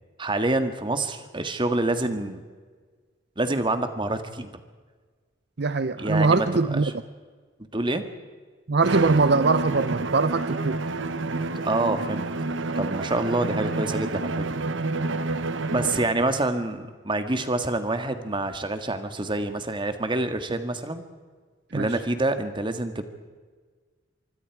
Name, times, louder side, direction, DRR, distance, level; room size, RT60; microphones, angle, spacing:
voice 1, 0.2-2.4 3.4-4.5 6.0-6.9 7.7-8.0 11.6-12.3 12.7-14.3 15.6-21.0 21.7-23.1, right 2 dB, 25° right, 8 dB, 1.7 m, -27 dB
voice 2, 5.6-6.9 8.7-10.8 21.7-21.9, right 3 dB, 60° right, 13 dB, 0.7 m, -22 dB
Bowed string instrument, 8.8-16.2, right 3 dB, 80° right, 1.0 m, -28 dB
25.0 x 24.5 x 4.7 m, 1.5 s
head